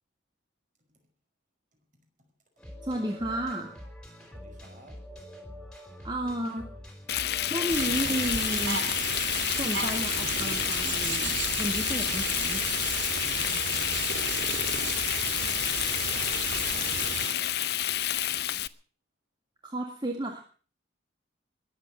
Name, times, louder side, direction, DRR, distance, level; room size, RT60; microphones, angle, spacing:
sound 1, 2.6-8.7, equal, 5° left, 3.6 m, -45 dB
voice 1, 2.8-3.7 6.0-6.7 7.4-8.8 9.6-12.6 19.6-20.4, right 1 dB, 25° right, 1.8 m, -32 dB
voice 2, 4.3-5.1 13.3-17.7, equal, 40° right, 5.3 m, -54 dB
Frying (food), 7.1-18.7, left 12 dB, 55° left, 0.6 m, -29 dB
sound 2, 7.7-17.3, right 6 dB, 70° right, 2.3 m, -33 dB
21.5 x 8.2 x 7.4 m
head